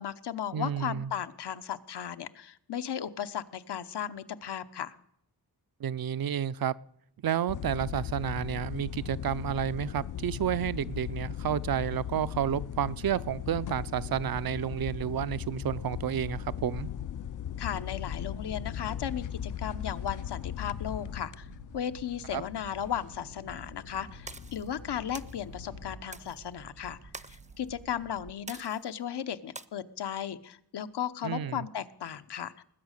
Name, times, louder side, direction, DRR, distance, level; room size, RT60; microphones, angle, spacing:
voice 1, 0.0-5.0 17.6-21.5 21.7-27.0 27.3-32.6, left 9 dB, 80° left, 0.9 m, -36 dB
voice 2, 0.5-1.1 5.8-6.7 7.2-16.9 22.3-22.4 31.2-31.7, right 9 dB, 60° right, 0.6 m, -31 dB
sound 1, 7.5-26.0, left 10 dB, 50° left, 0.5 m, -38 dB
sound 2, 12.3-28.3, right 5 dB, 90° right, 3.1 m, -54 dB
sound 3, 24.3-24.7 25.1-25.4 26.1-26.4 27.1-27.5 28.5-28.9 29.5-29.6, right 3 dB, 20° right, 0.6 m, -44 dB
20.0 x 8.3 x 6.5 m
wide cardioid pair, 85°, 40 cm